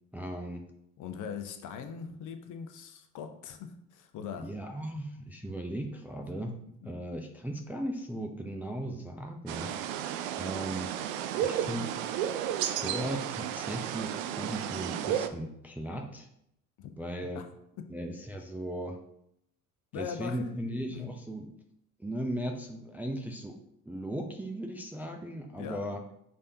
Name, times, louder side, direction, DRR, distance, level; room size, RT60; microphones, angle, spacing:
voice 1, 0.1-0.6 4.4-6.5 6.8-9.7 10.4-10.9 11.4-11.9 12.6-16.3 17.0-17.4 17.9-19.0 19.9-21.5 22.0-23.5 23.9-26.1, right 1 dB, 5° right, 2 dB, 0.4 m, -37 dB
voice 2, 1.0-4.5 6.8-6.9 16.8-16.9 17.3-17.4 19.9-20.5 20.8-21.1 25.6-25.8, left 7 dB, 50° left, 6 dB, 0.7 m, -41 dB
sound 1, 9.5-15.3, right 10 dB, 70° right, 0.5 m, -33 dB
5.3 x 3.4 x 2.7 m, 0.75 s
hypercardioid pair, 60°, 41 cm